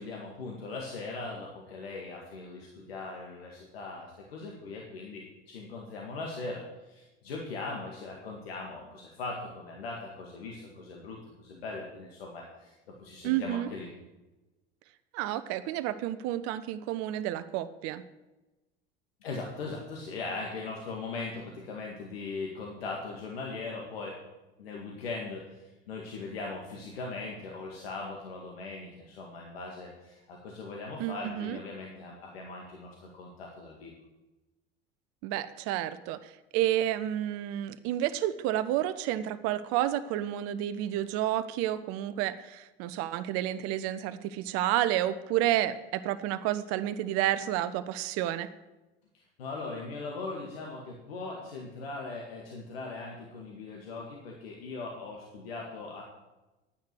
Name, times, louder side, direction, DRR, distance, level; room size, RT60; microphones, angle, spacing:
voice 1, 0.0-12.7 13.0-13.9 19.2-24.2 24.6-33.9 49.4-56.0, left 3 dB, 70° left, -1 dB, 2.1 m, -40 dB
voice 2, 13.2-13.7 15.1-18.0 31.0-31.6 35.2-48.5, right 13 dB, 45° right, 12 dB, 0.8 m, -30 dB
11.0 x 9.5 x 6.2 m, 1.1 s
figure-of-eight pair, 75°, 31 cm